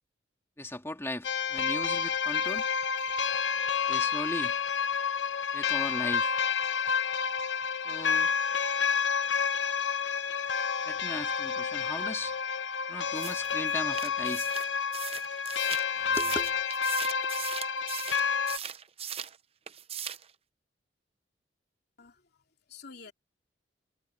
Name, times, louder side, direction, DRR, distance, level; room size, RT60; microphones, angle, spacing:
voice 1, 0.6-2.7 3.9-4.5 5.5-6.3 7.8-8.3 10.8-12.3 12.9-14.5 16.0-16.6, left 1 dB, 15° left, 2.5 m, -37 dB
sound 1, 1.2-18.6, left 6 dB, 90° left, 1.0 m, -29 dB
sound 2, 13.1-19.4 19.7-20.3, right 9 dB, 35° right, 0.7 m, -40 dB
voice 2, 22.0-23.1, left 5 dB, 60° left, 2.9 m, -50 dB
head